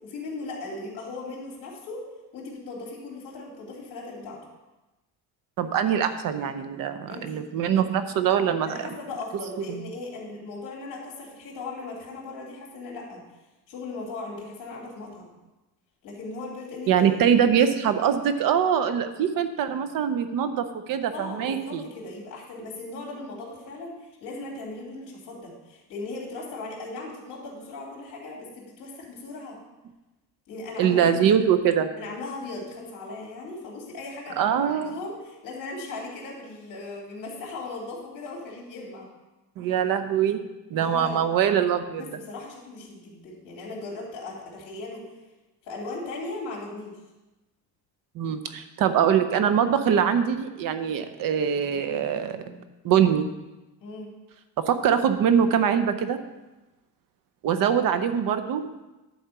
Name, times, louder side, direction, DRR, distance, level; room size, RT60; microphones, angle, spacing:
voice 1, 0.0-2.1 2.3-4.4 7.1-7.4 8.6-13.2 13.7-15.3 16.0-17.2 21.1-29.6 30.5-31.2 32.0-39.1 40.8-41.2 42.0-45.1 45.6-47.0 53.8-54.1, left 3 dB, 50° left, -3 dB, 3.1 m, -38 dB
voice 2, 5.6-8.7 16.9-21.8 30.8-31.9 34.4-35.0 39.6-40.4 40.7-42.0 48.2-52.6 52.8-53.3 54.7-56.2 57.4-58.7, right 8 dB, 55° right, 10 dB, 0.7 m, -23 dB
11.0 x 4.3 x 6.9 m, 1.1 s
cardioid pair, 175°, 40 cm